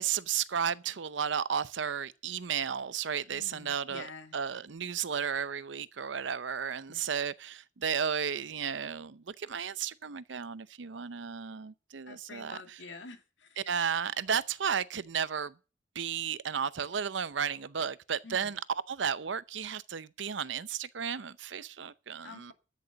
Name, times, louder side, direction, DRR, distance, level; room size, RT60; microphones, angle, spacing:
voice 1, 0.0-4.1 4.3-12.6 13.6-15.5 15.9-18.6 18.9-22.5, right 7 dB, 75° right, 0.7 m, -33 dB
voice 2, 3.3-4.4 6.9-7.1 12.1-13.6 18.2-18.6 22.2-22.5, left 3 dB, 80° left, 2.1 m, -48 dB
13.0 x 6.8 x 6.9 m
head